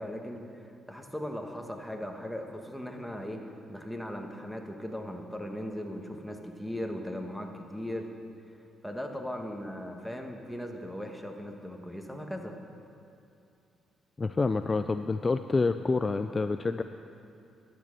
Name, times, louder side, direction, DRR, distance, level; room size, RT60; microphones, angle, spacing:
voice 1, 0.0-3.4 3.7-8.1 8.8-12.5, equal, ahead, 3 dB, 1.3 m, -38 dB
voice 2, 14.2-16.8, left 3 dB, 30° left, 9 dB, 0.3 m, -28 dB
12.0 x 8.8 x 6.4 m, 2.6 s
cardioid pair, 90°, 0 cm